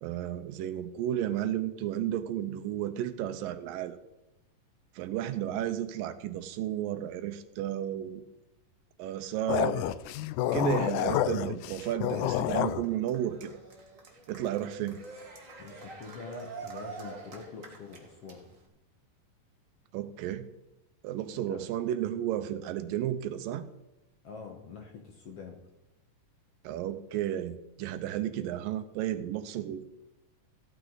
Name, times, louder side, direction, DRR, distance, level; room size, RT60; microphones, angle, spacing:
voice 1, 0.0-4.0 5.0-8.2 9.0-9.9 10.5-13.6 14.3-15.0 19.9-20.5 21.0-23.6 26.6-29.9, right 11 dB, 80° right, 11 dB, 2.4 m, -33 dB
sound 1, 9.5-12.8, left 12 dB, 80° left, 1.9 m, -29 dB
Cheering, 11.6-18.7, right 4 dB, 35° right, 1.3 m, -46 dB
voice 2, 15.6-18.4 21.3-21.6 24.2-25.6, left 5 dB, 60° left, 2 dB, 1.7 m, -45 dB
15.5 x 9.1 x 4.0 m, 0.94 s
omnidirectional pair, 4.0 m